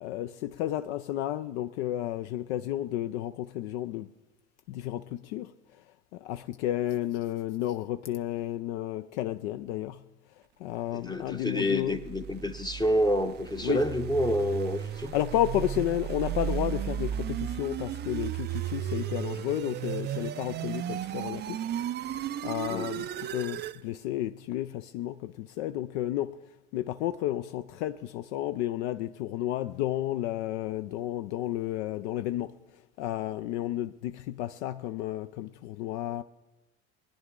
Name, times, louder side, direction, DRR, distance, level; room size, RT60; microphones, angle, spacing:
voice 1, 0.0-4.1 4.7-5.5 6.1-10.0 10.6-12.0 13.6-13.9 15.1-21.6 22.4-26.4 26.7-32.6 33.0-36.2, left 13 dB, 75° left, 0.5 m, -32 dB
voice 2, 10.9-15.1 22.7-22.9, equal, 10° left, 0.6 m, -28 dB
sound 1, 11.6-23.8, right 11 dB, 30° right, 0.4 m, -35 dB
20.5 x 9.9 x 3.7 m
hypercardioid pair, 80°, 35 cm